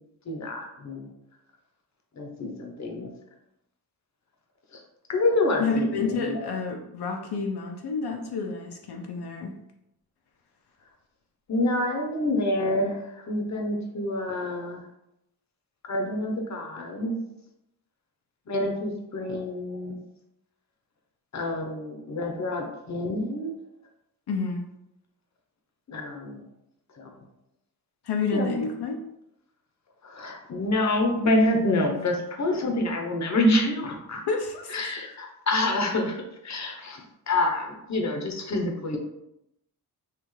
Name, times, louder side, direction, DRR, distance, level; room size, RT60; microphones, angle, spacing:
voice 1, 0.3-1.1 2.2-3.1 4.7-4.8 5.1-6.5 11.5-14.8 15.8-17.1 18.5-20.0 21.3-23.5 25.9-26.4 27.0-27.2 28.3-28.6 30.0-34.2 34.7-39.0, left 1 dB, 45° left, 2 dB, 0.8 m, -27 dB
voice 2, 5.6-9.5 24.3-24.7 28.0-29.0 31.9-32.1 34.3-34.8, left 4 dB, 80° left, 2 dB, 0.6 m, -29 dB
5.8 x 2.4 x 3.1 m, 0.84 s
wide cardioid pair, 125°, 38 cm